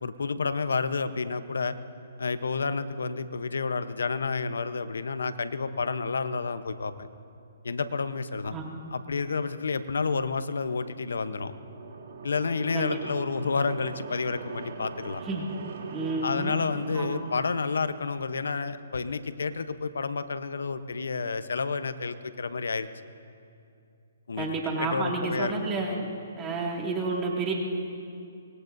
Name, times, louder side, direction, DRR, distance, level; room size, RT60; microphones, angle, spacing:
voice 1, 0.0-1.8 2.2-7.1 7.6-8.5 8.9-11.5 12.2-15.2 16.2-22.9 24.3-24.5 24.8-25.8, left 4 dB, 85° left, 12 dB, 0.9 m, -30 dB
voice 2, 8.5-8.8 12.7-13.0 15.3-15.5 15.9-16.5 16.9-17.2 24.4-26.1 26.3-27.5, right 3 dB, 20° right, -2 dB, 2.2 m, -30 dB
sound 1, 10.8-18.5, right 4 dB, 60° right, 3.0 m, -42 dB
24.5 x 21.0 x 2.7 m, 2.5 s
hypercardioid pair, 150°, 0 cm